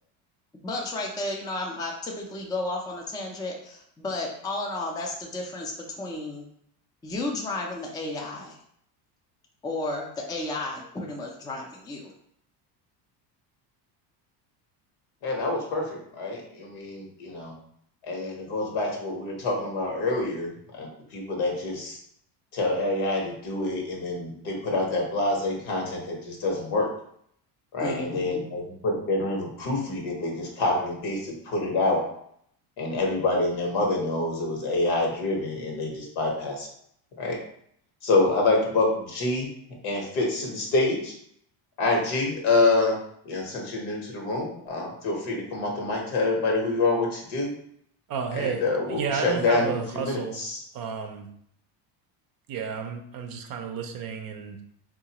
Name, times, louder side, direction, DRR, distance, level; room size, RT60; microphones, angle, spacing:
voice 1, 0.6-6.5 7.0-8.6 9.6-12.1 27.8-28.5, left 2 dB, 10° left, 0 dB, 0.4 m, -33 dB
voice 2, 15.2-17.5 18.0-22.0 22.5-26.9 27.7-32.0 32.8-36.7 37.2-37.4 38.0-39.5 39.8-41.1 41.8-43.0 43.2-47.5 48.3-50.6, left 2 dB, 75° left, 0 dB, 1.2 m, -26 dB
voice 3, 48.1-48.6 48.9-50.4 50.7-51.3 52.5-54.6, right 6 dB, 45° right, 5 dB, 0.5 m, -32 dB
3.7 x 2.4 x 2.9 m, 0.69 s
supercardioid pair, 110°, 49 cm